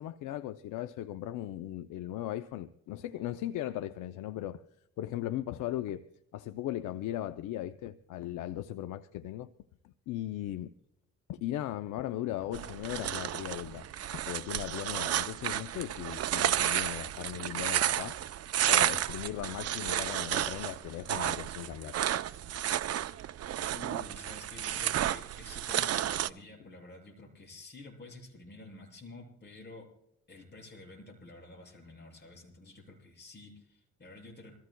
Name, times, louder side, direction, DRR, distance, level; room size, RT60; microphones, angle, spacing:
voice 1, 0.0-4.6 5.0-6.1 6.3-9.5 9.8-10.7 11.3-13.9 14.1-18.2 18.7-22.0, left 13 dB, 80° left, 0.6 m, -38 dB
sound 1, 12.5-26.3, right 11 dB, 55° right, 0.6 m, -32 dB
voice 2, 23.7-29.9 30.3-34.6, left 2 dB, 35° left, 6.8 m, -50 dB
26.0 x 15.0 x 2.2 m
cardioid pair, 90°, 30 cm